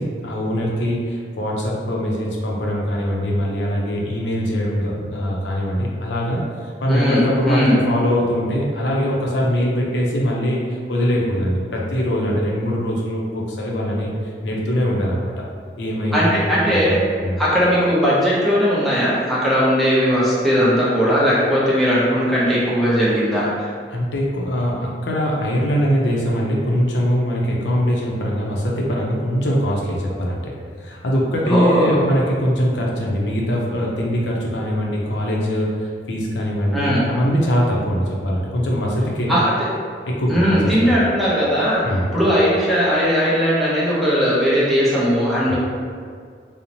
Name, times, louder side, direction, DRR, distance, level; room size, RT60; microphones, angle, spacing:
voice 1, 0.0-14.1 14.4-15.3 15.8-16.6 16.9-17.4 23.9-30.5 30.8-39.4 40.1-41.0 41.8-42.1 45.4-45.5, equal, 80° left, -2 dB, 0.5 m, -22 dB
voice 2, 6.9-7.8 16.1-17.0 17.4-23.7 31.5-32.0 36.7-37.1 39.3-39.5 40.3-41.8 42.1-45.5, equal, ahead, -9 dB, 0.6 m, -18 dB
2.9 x 2.0 x 2.6 m, 2.1 s
head